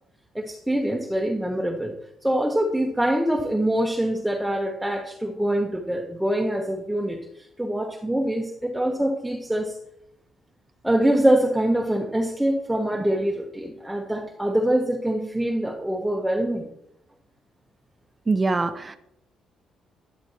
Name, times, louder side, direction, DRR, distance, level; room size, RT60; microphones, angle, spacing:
voice 1, 0.3-1.9 2.2-9.8 10.8-16.7, right 1 dB, 5° right, 1 dB, 1.0 m, -24 dB
voice 2, 18.3-18.9, right 3 dB, 25° right, 7 dB, 0.7 m, -23 dB
11.5 x 10.5 x 3.0 m, 0.81 s
cardioid pair, 90°, 0 cm